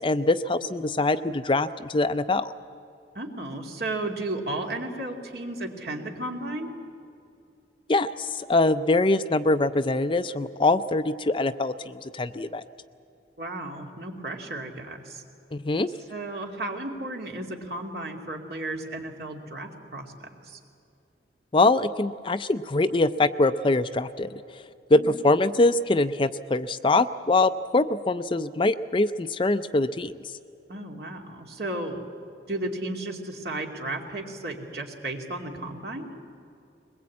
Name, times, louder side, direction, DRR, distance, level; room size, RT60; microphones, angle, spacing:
voice 1, 0.0-2.5 7.9-12.6 15.5-15.9 21.5-24.3 24.9-30.1, left 2 dB, 30° left, 11 dB, 0.5 m, -23 dB
voice 2, 3.1-6.7 13.4-15.2 16.1-20.6 24.9-25.1 30.7-32.1 32.5-36.1, right 2 dB, 60° right, 1 dB, 2.5 m, -34 dB
22.0 x 20.5 x 8.5 m, 2.7 s
head